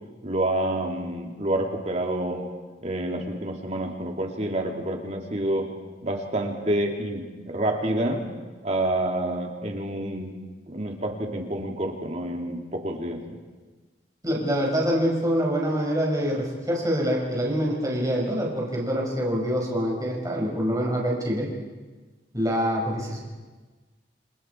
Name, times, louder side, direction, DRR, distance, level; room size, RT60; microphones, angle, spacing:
voice 1, 0.2-2.4 2.8-5.7 6.0-8.3 8.6-10.3 10.7-13.4, right 1 dB, 40° right, 2 dB, 3.0 m, -28 dB
voice 2, 14.2-21.5 22.3-23.2, equal, 20° right, -2 dB, 5.6 m, -25 dB
29.0 x 28.0 x 4.7 m, 1.3 s
head